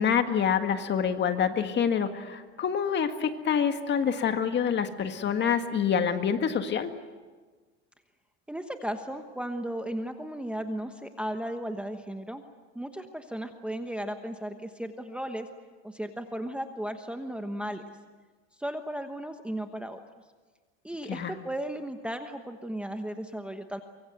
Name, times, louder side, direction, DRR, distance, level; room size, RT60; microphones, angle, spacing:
voice 1, 0.0-6.9 21.1-21.3, left 7 dB, 30° left, 8 dB, 1.8 m, -26 dB
voice 2, 8.5-12.4 12.7-15.5 15.8-17.8 18.6-20.0 20.8-23.8, right 1 dB, 5° right, 6 dB, 1.2 m, -35 dB
24.0 x 24.0 x 8.1 m, 1.4 s
cardioid pair, 140°, 34 cm